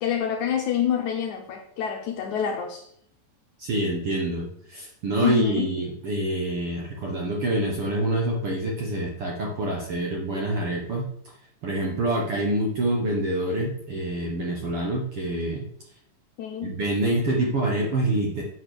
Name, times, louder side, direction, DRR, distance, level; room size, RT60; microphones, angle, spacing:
voice 1, 0.0-2.9 5.2-5.7 16.4-16.7, left 9 dB, 75° left, 2 dB, 1.9 m, -27 dB
voice 2, 3.6-11.1 11.6-15.6 16.6-18.4, right 1 dB, 60° right, -1 dB, 1.6 m, -26 dB
8.7 x 4.1 x 6.8 m, 0.68 s
omnidirectional pair, 4.1 m